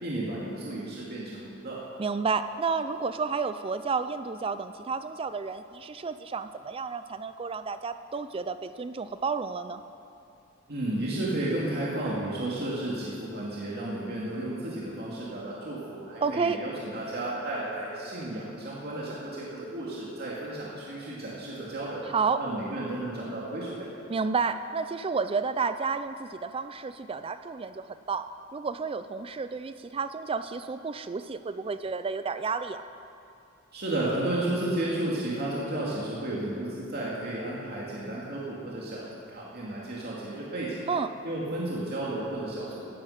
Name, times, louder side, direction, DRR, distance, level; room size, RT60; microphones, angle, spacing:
voice 1, 0.0-1.8 10.7-22.0 22.4-23.9 33.7-40.8 41.2-42.9, right 1 dB, 50° right, -6 dB, 2.3 m, -33 dB
voice 2, 2.0-9.8 16.2-16.6 22.0-22.4 24.1-28.3 28.5-32.8 40.9-41.1, right 5 dB, 30° right, 11 dB, 0.4 m, -31 dB
17.0 x 9.8 x 6.5 m, 2.6 s
head